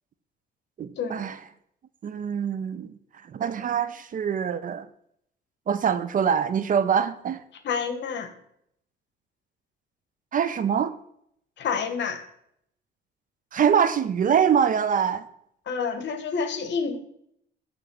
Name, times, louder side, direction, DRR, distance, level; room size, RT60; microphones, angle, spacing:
voice 1, 0.8-1.4 2.0-2.9 3.2-4.9 5.7-7.4 10.3-10.9 13.5-15.3, right 7 dB, 45° right, 0.4 m, -24 dB
voice 2, 7.6-8.3 11.6-12.2 15.7-17.0, left 5 dB, 65° left, 1.0 m, -28 dB
6.9 x 3.2 x 6.0 m
cardioid pair, 90°, 20 cm